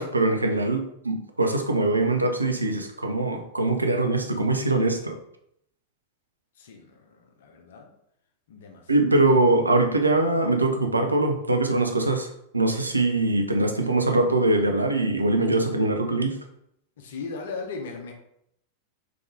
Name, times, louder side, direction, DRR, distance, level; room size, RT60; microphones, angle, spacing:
voice 1, 0.0-5.2 8.9-16.4, right 2 dB, 80° right, 4 dB, 0.5 m, -23 dB
voice 2, 6.6-7.9 8.5-8.9 17.0-18.1, left 4 dB, 60° left, 3 dB, 0.7 m, -38 dB
3.8 x 3.4 x 3.3 m, 0.76 s
figure-of-eight pair, 90°, 0 cm